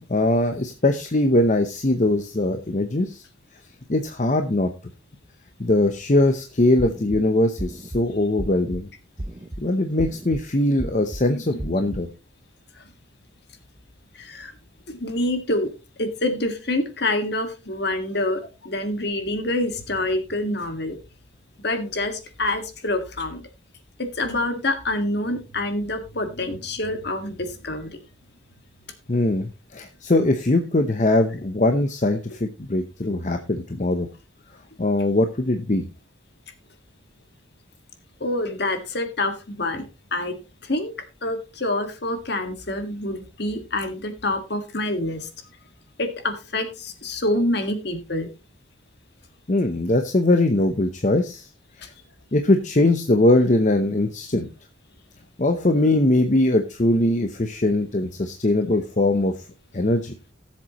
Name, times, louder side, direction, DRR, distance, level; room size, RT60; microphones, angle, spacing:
voice 1, 0.1-3.2 3.9-4.7 5.6-8.9 9.6-12.1 29.1-34.1 34.8-35.9 49.5-51.5 51.8-51.9 52.3-54.5 55.4-59.4 59.7-60.1, left 1 dB, 40° left, 7 dB, 0.8 m, -21 dB
sound 1, 6.8-7.2 7.6-8.0 8.4-8.8 9.2-9.6 10.0-10.4 10.8-11.2 11.6-12.0, right 1 dB, 20° right, 0.6 m, -33 dB
voice 2, 11.3-11.6 12.8-12.9 14.1-14.5 14.9-15.7 16.0-21.0 21.6-23.4 24.0-28.0 38.2-40.9 41.2-45.3 46.0-48.3, left 1 dB, 55° left, 7 dB, 1.8 m, -27 dB
17.5 x 7.5 x 3.0 m, 0.30 s
head